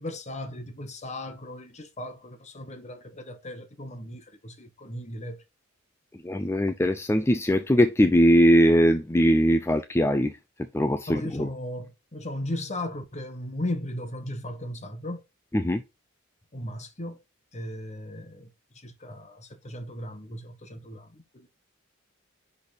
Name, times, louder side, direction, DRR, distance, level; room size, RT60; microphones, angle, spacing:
voice 1, 0.0-5.4 11.1-15.2 16.5-17.2 17.5-21.5, left 1 dB, 35° left, 1.5 m, -36 dB
voice 2, 6.2-10.3 10.7-11.5 15.5-15.8, equal, 10° left, 0.5 m, -21 dB
10.5 x 4.2 x 4.3 m
head